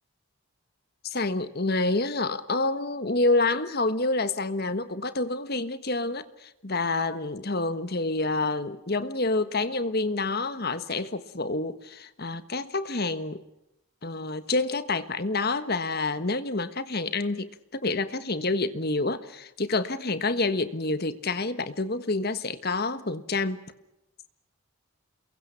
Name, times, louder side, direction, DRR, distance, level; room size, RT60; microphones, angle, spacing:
voice 1, 1.0-13.4 14.0-23.6, left 2 dB, 45° left, 12 dB, 1.4 m, -28 dB
29.0 x 23.0 x 5.9 m, 0.90 s
head